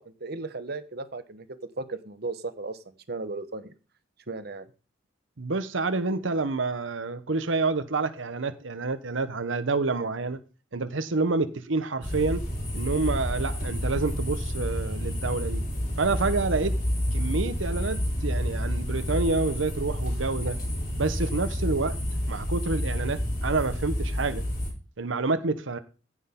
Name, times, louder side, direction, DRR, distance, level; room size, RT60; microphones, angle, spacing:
voice 1, 0.0-1.5 1.8-3.7 4.3-4.7, right 3 dB, 55° right, 1.2 m, -36 dB
voice 2, 5.4-10.4 10.7-12.4 12.7-15.6 16.0-16.7 17.1-20.6 21.0-22.0 22.3-24.4 25.0-25.8, right 3 dB, 85° right, 1.0 m, -28 dB
sound 1, 12.0-24.7, equal, 45° left, 4.7 m, -29 dB
15.5 x 6.3 x 3.7 m
head